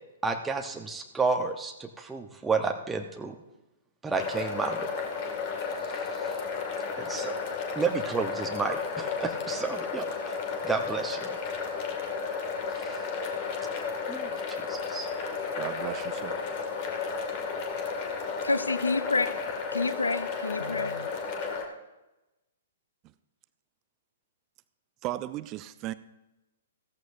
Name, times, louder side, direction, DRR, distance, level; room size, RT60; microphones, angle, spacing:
voice 1, 0.2-3.3 4.0-4.8 5.9-6.3 7.0-7.3 7.8-10.3 10.6-11.4 12.8-12.9 14.1-15.2, right 4 dB, 10° right, 3 dB, 0.9 m, -31 dB
sound 1, 4.1-21.6, left 5 dB, 40° left, 2.1 m, -33 dB
voice 2, 15.6-16.4 25.0-25.9, right 15 dB, 30° right, 15 dB, 0.5 m, -35 dB
voice 3, 18.4-19.3 19.7-21.1, left 3 dB, 80° left, 14 dB, 0.5 m, -28 dB
16.0 x 14.0 x 2.6 m, 0.99 s
figure-of-eight pair, 115°, 0 cm